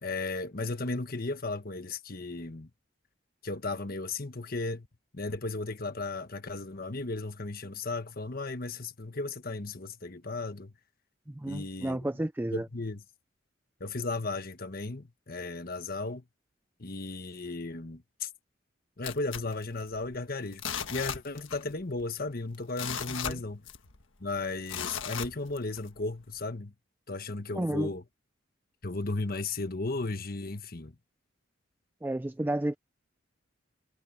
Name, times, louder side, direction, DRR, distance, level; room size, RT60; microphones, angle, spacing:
voice 1, 0.0-2.7 3.4-4.9 5.1-10.7 11.4-12.0 12.5-13.0 13.8-16.2 16.8-18.3 19.0-20.6 20.9-23.7 24.2-26.7 27.1-28.0 28.8-30.9, left 3 dB, 50° left, 1.4 m, -35 dB
voice 2, 11.3-12.7 23.3-23.4 27.6-27.9 32.0-32.8, right 1 dB, 10° right, 0.4 m, -31 dB
sound 1, 19.0-20.2 20.5-21.7 22.0-22.1 22.5-24.0 24.7-25.9 26.4-26.5, left 7 dB, 80° left, 1.5 m, -37 dB
head